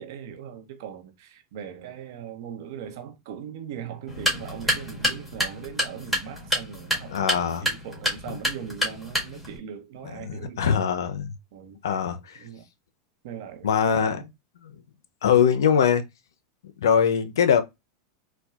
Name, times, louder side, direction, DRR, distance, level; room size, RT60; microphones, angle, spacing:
voice 1, 0.0-10.9 11.5-12.0 12.3-12.6 13.2-14.3, right 8 dB, 70° right, 0.8 m, -40 dB
sound 1, 4.1-9.6, equal, ahead, 1.5 m, -29 dB
voice 2, 7.1-7.6 10.2-11.3 11.8-12.2 13.6-14.2 15.2-16.0 16.8-17.6, left 7 dB, 85° left, 0.5 m, -21 dB
4.2 x 2.2 x 2.3 m
hypercardioid pair, 110°, 2 cm